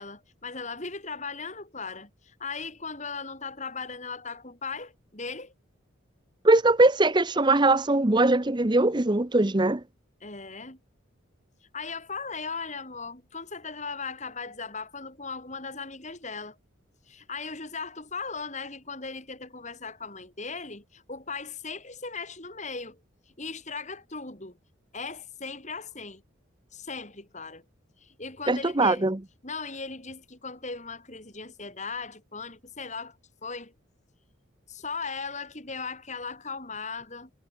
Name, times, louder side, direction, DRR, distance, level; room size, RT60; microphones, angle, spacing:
voice 1, 0.0-5.5 10.2-10.8 11.7-16.6 17.1-23.0 23.4-24.6 24.9-26.2 26.7-27.6 28.0-29.0 29.4-33.2 33.4-33.7 34.7-37.3, left 4 dB, 35° left, 4.9 m, -38 dB
voice 2, 6.4-9.8 28.5-29.2, right 2 dB, 20° right, 0.8 m, -21 dB
head